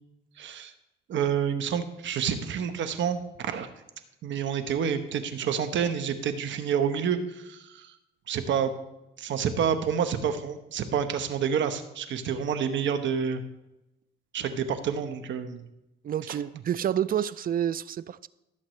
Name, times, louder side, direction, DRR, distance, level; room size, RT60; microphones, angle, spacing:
voice 1, 0.4-0.7 1.1-3.7 4.2-7.9 8.3-8.7 9.2-13.4 14.3-15.6, right 7 dB, 70° right, 1.1 m, -28 dB
voice 2, 16.0-18.3, right 10 dB, 45° right, 0.4 m, -29 dB
16.5 x 7.6 x 3.2 m
cardioid pair, 90°, 20 cm